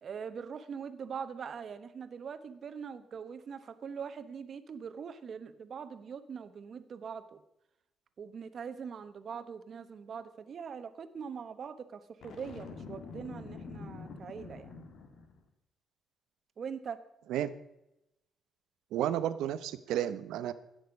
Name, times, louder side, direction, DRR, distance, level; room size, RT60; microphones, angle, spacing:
voice 1, 0.0-7.4 8.2-14.7 16.6-17.0, right 6 dB, 55° right, 11 dB, 1.1 m, -42 dB
Boom, 12.2-15.4, left 4 dB, 70° left, 1.8 m, -46 dB
voice 2, 18.9-20.5, right 11 dB, 85° right, 14 dB, 0.7 m, -32 dB
16.5 x 6.6 x 5.2 m, 0.87 s
cardioid pair, 90°, 0 cm